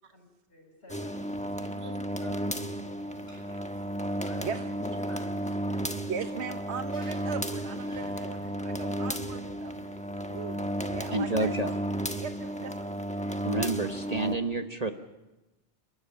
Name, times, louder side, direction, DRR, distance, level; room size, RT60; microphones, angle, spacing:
voice 1, 0.5-2.8 4.2-4.5 5.0-6.1, left 1 dB, 70° left, -4 dB, 5.8 m, -50 dB
sound 1, 0.9-14.4, right 1 dB, 5° left, 1.2 m, -33 dB
sound 2, 3.2-5.2 6.0-11.3, left 1 dB, 30° left, 7.8 m, -56 dB
voice 2, 6.1-9.7 10.3-10.6 10.9-11.8 12.2-12.9, right 6 dB, 80° right, 8 dB, 1.3 m, -39 dB
voice 3, 11.1-11.8 13.4-14.9, right 2 dB, 35° right, 7 dB, 1.3 m, -29 dB
30.0 x 13.5 x 9.9 m, 1.0 s
omnidirectional pair, 1.1 m